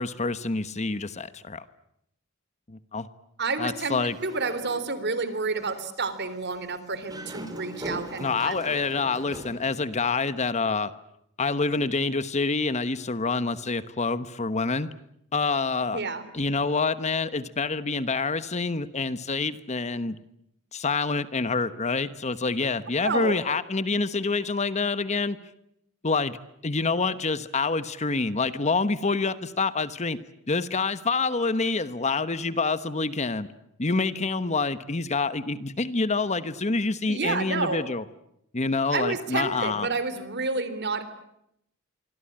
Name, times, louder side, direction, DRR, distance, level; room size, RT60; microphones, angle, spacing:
voice 1, 0.0-1.6 2.7-3.1 3.6-4.1 8.2-10.9 11.4-14.9 15.3-16.0 16.3-20.2 20.7-25.4 26.0-30.2 30.5-33.5 33.8-38.0 38.5-39.9, left 4 dB, 35° left, 14 dB, 1.1 m, -27 dB
voice 2, 3.4-8.5 15.9-16.2 23.0-23.3 37.1-37.8 38.9-41.0, right 4 dB, 55° right, 13 dB, 3.5 m, -29 dB
Dog, 4.1-5.2 5.6-5.7 6.9-9.6, right 1 dB, 20° right, 3.9 m, -40 dB
26.5 x 24.5 x 8.8 m, 0.77 s
head